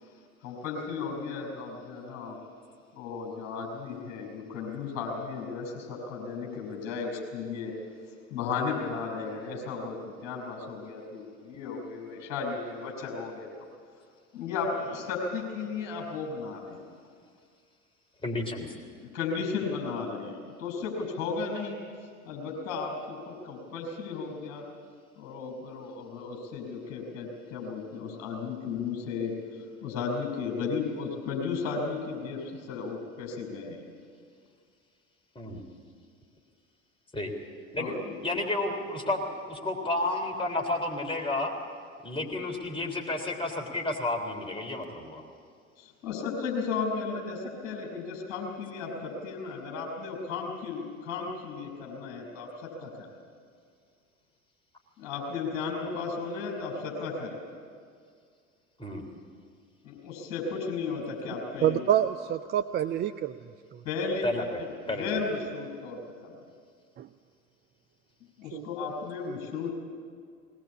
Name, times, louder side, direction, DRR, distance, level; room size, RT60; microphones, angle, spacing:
voice 1, 0.4-2.4 3.0-7.8 8.3-13.5 14.3-16.8 19.0-21.8 22.3-24.6 25.2-29.3 29.8-33.8 37.8-37.9 45.8-53.1 55.0-57.4 59.8-61.8 63.8-64.3 64.6-66.3 68.4-69.7, left 4 dB, 50° left, 0 dB, 5.8 m, -34 dB
voice 2, 18.2-18.7 35.4-35.6 37.1-37.3 37.7-41.5 42.0-45.2 58.8-59.0 64.2-64.4 64.9-65.0, left 2 dB, 15° left, 1 dB, 3.6 m, -31 dB
voice 3, 61.6-63.3 63.7-63.8 67.0-67.1 68.5-68.7, right 10 dB, 25° right, 10 dB, 0.5 m, -27 dB
20.0 x 19.5 x 8.5 m, 2.1 s
figure-of-eight pair, 70°, 39 cm